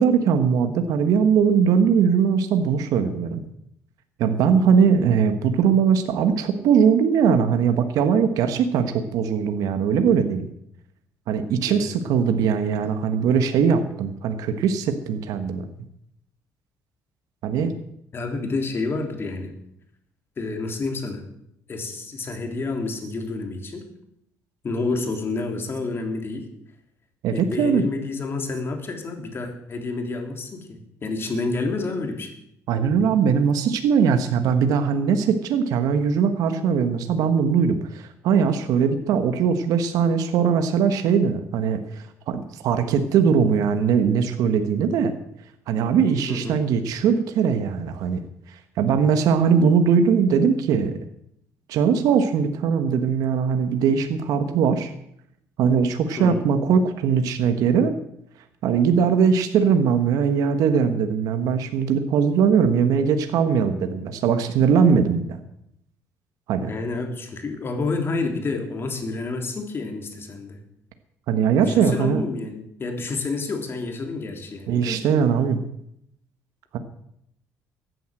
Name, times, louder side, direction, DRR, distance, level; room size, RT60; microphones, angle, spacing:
voice 1, 0.0-3.4 4.2-10.5 11.3-15.6 17.4-17.7 27.2-27.8 32.7-45.1 45.7-48.2 48.5-50.9 51.7-54.9 55.6-57.9 58.6-65.4 66.5-66.7 71.3-72.2 74.7-75.6 76.7-76.8, right 6 dB, 75° right, 8 dB, 1.4 m, -20 dB
voice 2, 11.7-12.0 18.1-19.5 20.4-21.2 21.7-23.9 24.6-26.4 27.3-32.3 46.3-46.6 56.2-56.4 66.7-70.6 71.6-75.0, left 3 dB, 40° left, 4 dB, 3.5 m, -29 dB
14.5 x 9.5 x 7.7 m, 0.75 s
cardioid pair, 90°, 6 cm